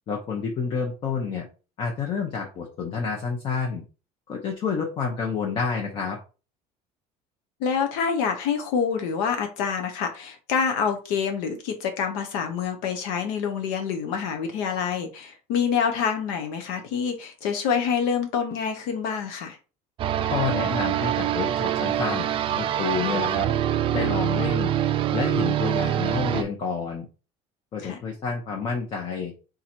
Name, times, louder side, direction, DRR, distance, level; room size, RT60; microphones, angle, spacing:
voice 1, 0.1-1.5 1.8-3.8 4.3-6.2 20.3-23.5 23.9-24.7 25.1-27.1 27.7-29.3, left 5 dB, 35° left, 2 dB, 0.8 m, -29 dB
voice 2, 7.6-19.6 23.1-23.5 27.8-28.0, left 6 dB, 80° left, 5 dB, 0.9 m, -27 dB
sound 1, 20.0-26.4, right 11 dB, 35° right, 0.4 m, -25 dB
3.8 x 2.9 x 4.4 m, 0.34 s
cardioid pair, 150°, 15 cm